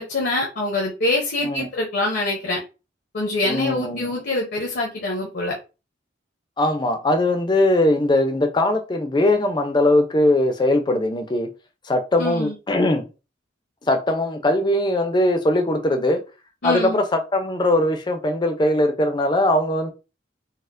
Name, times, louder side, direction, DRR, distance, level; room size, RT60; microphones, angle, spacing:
voice 1, 0.0-2.6 3.1-5.5 12.2-12.5 16.6-17.0, left 2 dB, 65° left, 0.7 m, -25 dB
voice 2, 3.5-4.1 6.6-11.5 11.9-13.1 13.9-16.2 16.6-19.9, left 1 dB, 25° left, 0.5 m, -20 dB
4.1 x 2.0 x 2.5 m
head